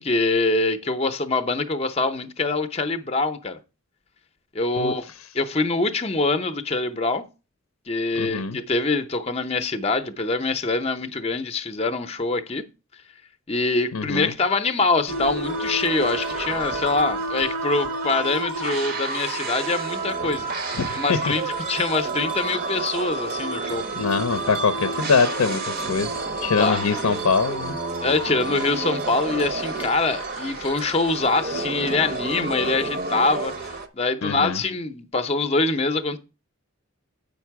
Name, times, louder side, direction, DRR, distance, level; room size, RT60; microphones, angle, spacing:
voice 1, 0.0-3.6 4.5-7.3 7.9-12.6 13.5-23.8 26.6-26.8 28.0-36.2, left 3 dB, 30° left, 0.6 m, -24 dB
voice 2, 8.2-8.6 13.9-14.3 20.7-21.3 24.0-26.1 26.4-27.8 34.2-34.6, left 5 dB, 80° left, 0.5 m, -23 dB
sound 1, 15.1-33.9, right 3 dB, 40° right, 0.7 m, -29 dB
8.0 x 5.3 x 4.6 m
head